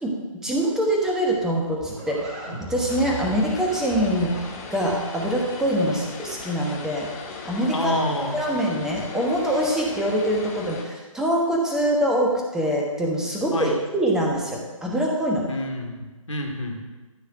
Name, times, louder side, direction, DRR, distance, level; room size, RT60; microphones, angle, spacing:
voice 1, 0.0-4.4 4.7-7.1 7.4-7.9 8.3-15.4, equal, 5° right, -2 dB, 1.2 m, -24 dB
Livestock farm animals working animals, 1.2-6.2, right 2 dB, 20° right, 2.1 m, -38 dB
Vehicle, 2.9-10.8, left 4 dB, 25° left, 1.7 m, -38 dB
voice 2, 7.7-8.4 13.5-13.8 15.5-16.8, left 1 dB, 65° left, 2 dB, 2.5 m, -28 dB
14.0 x 5.6 x 7.8 m, 1.2 s
figure-of-eight pair, 145°, 18 cm